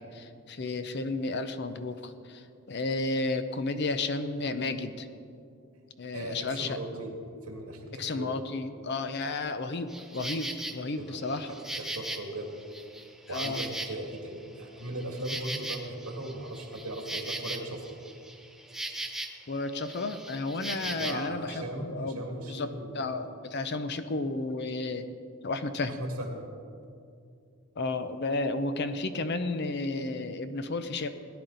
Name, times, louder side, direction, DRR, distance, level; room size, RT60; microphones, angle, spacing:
voice 1, 0.0-5.1 6.0-6.8 8.0-11.6 13.3-13.6 19.5-25.1 25.4-26.0 27.8-31.1, left 3 dB, 50° left, 10 dB, 0.6 m, -32 dB
voice 2, 6.1-8.4 11.0-11.2 11.5-12.5 13.3-17.8 21.0-23.1 25.9-26.4, right 1 dB, 75° right, 2 dB, 2.0 m, -38 dB
Insect, 9.9-10.8 11.3-14.3 14.6-19.5 19.7-21.3, right 1 dB, ahead, 0.5 m, -39 dB
17.5 x 10.5 x 4.0 m, 2.4 s
head